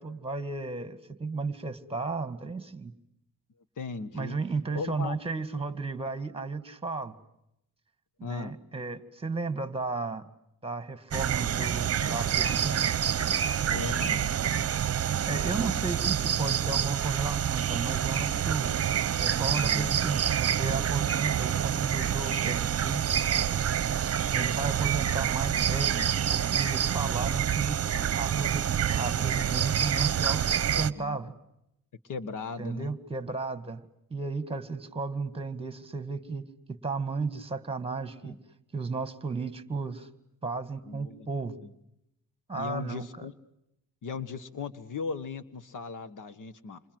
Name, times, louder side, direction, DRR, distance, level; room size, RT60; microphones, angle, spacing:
voice 1, 0.0-2.9 4.1-7.2 8.2-10.3 10.6-13.0 14.0-14.2 15.3-18.7 19.2-23.0 24.3-27.8 28.2-31.4 32.6-33.8 34.1-38.4 38.7-40.1 40.4-41.6 42.5-43.3, right 4 dB, 15° right, 13 dB, 2.0 m, -34 dB
voice 2, 3.8-4.4 4.7-5.2 8.2-8.5 13.7-14.3 15.5-15.8 19.5-19.9 30.7-31.2 32.0-32.9 38.2-38.4 40.8-41.3 41.6-41.7 42.6-43.3 44.0-46.8, left 5 dB, 60° left, 15 dB, 1.6 m, -38 dB
sound 1, 11.1-30.9, right 9 dB, 45° right, 1.0 m, -27 dB
28.5 x 26.5 x 7.9 m, 0.81 s
cardioid pair, 105°, 35 cm